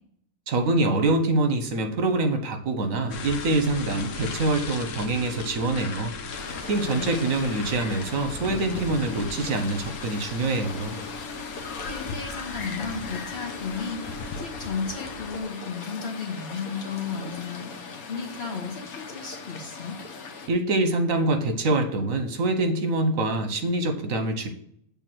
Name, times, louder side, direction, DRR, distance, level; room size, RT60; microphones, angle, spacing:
voice 1, 0.5-6.1 6.6-10.9 20.5-24.5, right 2 dB, 75° right, 6 dB, 1.4 m, -25 dB
sound 1, 3.1-15.4, left 3 dB, 65° left, 1.1 m, -37 dB
sound 2, 6.3-20.5, left 4 dB, 85° left, 1.5 m, -39 dB
voice 2, 11.9-20.0, left 5 dB, 50° left, 1 dB, 1.6 m, -34 dB
8.2 x 3.6 x 6.1 m, 0.68 s
omnidirectional pair, 1.4 m